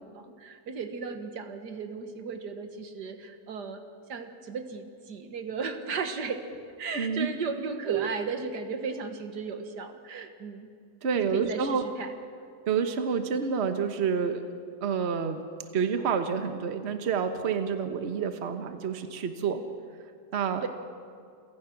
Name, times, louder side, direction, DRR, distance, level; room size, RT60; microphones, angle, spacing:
voice 1, 0.0-3.8 4.1-6.4 6.8-10.7 11.1-12.1 20.6-20.7, right 5 dB, 80° right, 7 dB, 2.0 m, -35 dB
voice 2, 6.9-7.3 7.9-8.1 11.0-11.8 12.7-14.4 14.8-15.4 15.7-19.6 20.3-20.6, right 6 dB, 45° right, 8 dB, 1.3 m, -28 dB
28.5 x 16.5 x 6.0 m, 2.3 s
omnidirectional pair, 1.8 m